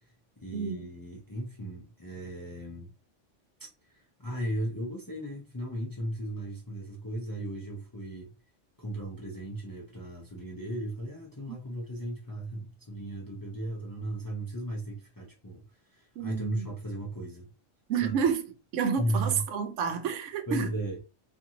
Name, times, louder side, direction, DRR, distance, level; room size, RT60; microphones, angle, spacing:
voice 1, 0.0-2.9 3.6-8.3 8.8-17.5 18.0-18.1 19.0-19.4 20.5-21.0, right 1 dB, 25° left, 0.5 m, -36 dB
voice 2, 0.5-0.9 11.5-11.6 16.2-16.7 17.9-18.5 18.7-20.7, right 7 dB, 85° right, 0.9 m, -29 dB
2.6 x 2.5 x 2.8 m
omnidirectional pair, 1.2 m